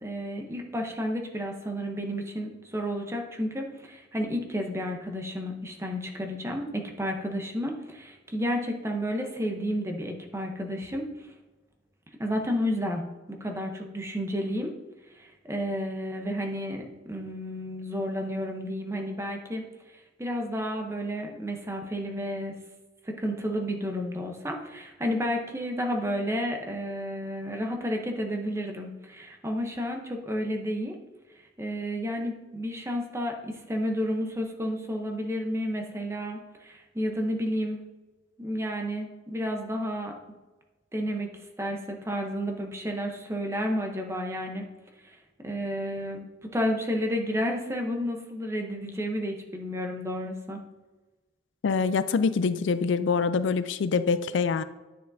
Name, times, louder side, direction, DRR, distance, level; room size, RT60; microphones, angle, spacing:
voice 1, 0.0-11.1 12.2-14.7 15.1-19.7 20.2-22.6 23.0-30.9 31.6-37.8 38.4-40.1 40.9-41.3 41.6-44.7 45.0-45.2 45.4-50.6, equal, 15° right, 2 dB, 0.8 m, -31 dB
voice 2, 51.6-54.6, left 5 dB, 80° left, 13 dB, 0.4 m, -25 dB
9.4 x 6.4 x 2.7 m, 1.2 s
head